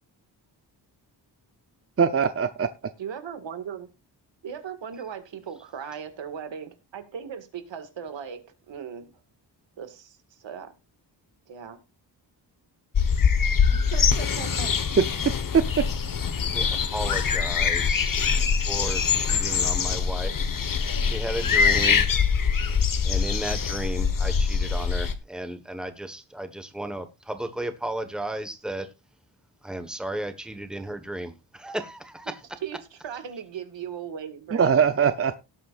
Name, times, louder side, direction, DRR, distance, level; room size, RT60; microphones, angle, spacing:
voice 1, 2.0-2.7 15.5-15.8 34.5-35.3, right 6 dB, 30° right, 0.7 m, -21 dB
voice 2, 3.0-3.9 4.4-9.1 9.8-10.7 11.5-11.8 13.7-14.7 32.6-32.8 33.0-34.7, right 7 dB, 85° right, 2.0 m, -38 dB
sound 1, 12.9-25.1, left 6 dB, 50° left, 1.3 m, -24 dB
voice 3, 16.5-18.3 18.7-20.3 21.0-22.1 22.8-28.9 29.6-32.4, right 1 dB, ahead, 1.4 m, -34 dB
18.0 x 8.5 x 2.5 m
wide cardioid pair, 140°, 44 cm